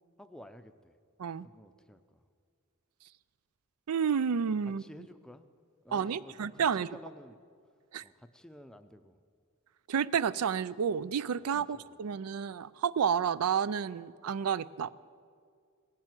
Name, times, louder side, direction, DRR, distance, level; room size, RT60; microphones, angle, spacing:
voice 1, 0.2-1.0 1.4-2.2 4.8-5.5 5.8-7.4 8.0-9.2 11.7-12.0, left 1 dB, 5° left, 9 dB, 0.5 m, -52 dB
voice 2, 3.9-4.8 5.9-6.9 7.9-8.0 9.9-14.9, right 7 dB, 90° right, 19 dB, 0.4 m, -30 dB
17.5 x 7.5 x 9.2 m, 2.2 s
head